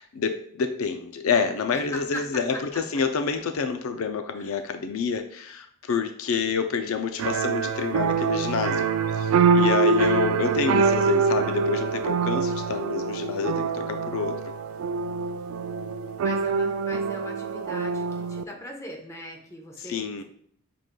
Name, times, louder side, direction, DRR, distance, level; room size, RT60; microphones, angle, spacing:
voice 1, 0.0-8.9 9.1-14.3 19.8-20.2, left 5 dB, 70° left, 8 dB, 0.4 m, -28 dB
voice 2, 1.7-2.2 4.4-4.6 16.2-20.2, equal, 15° left, 0 dB, 0.7 m, -40 dB
sound 1, 7.2-18.4, right 5 dB, 75° right, 0.3 m, -25 dB
6.4 x 3.8 x 2.2 m, 0.63 s
head